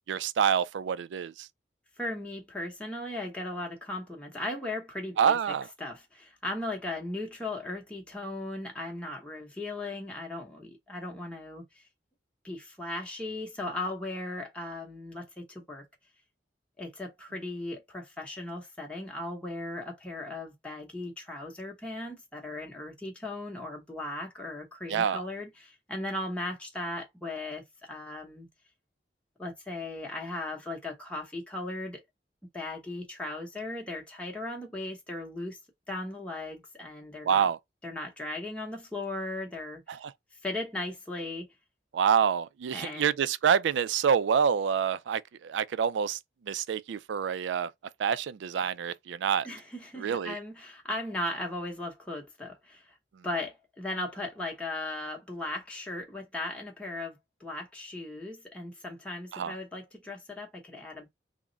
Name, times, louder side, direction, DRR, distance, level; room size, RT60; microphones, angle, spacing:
voice 1, 0.1-1.5 5.2-5.7 24.9-25.2 37.2-37.6 39.9-40.1 41.9-46.2 46.5-47.7 48.0-49.5 50.0-50.3 59.3-59.5, right 7 dB, 80° right, 0.3 m, -27 dB
voice 2, 2.0-5.4 5.8-11.8 12.4-15.8 16.8-28.5 29.4-32.0 32.5-35.6 35.9-37.5 37.8-40.0 40.4-41.5 42.7-43.1 49.4-52.9 53.2-61.1, left 2 dB, 5° left, 0.9 m, -37 dB
3.5 x 2.1 x 3.8 m
head